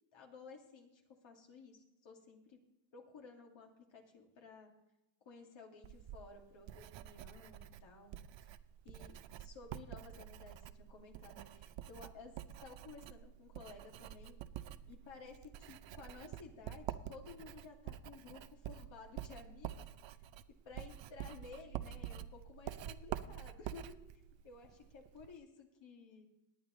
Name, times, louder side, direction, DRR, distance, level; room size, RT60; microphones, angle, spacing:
voice 1, 0.1-2.6 2.9-4.7 5.3-8.2 8.8-12.4 12.6-14.4 14.9-19.9 20.7-24.0 24.4-26.3, left 4 dB, 70° left, 1 dB, 2.5 m, -55 dB
Writing, 5.8-25.4, right 11 dB, 65° right, 0.7 m, -48 dB
17.5 x 9.7 x 3.2 m, 0.93 s
cardioid pair, 75°, 47 cm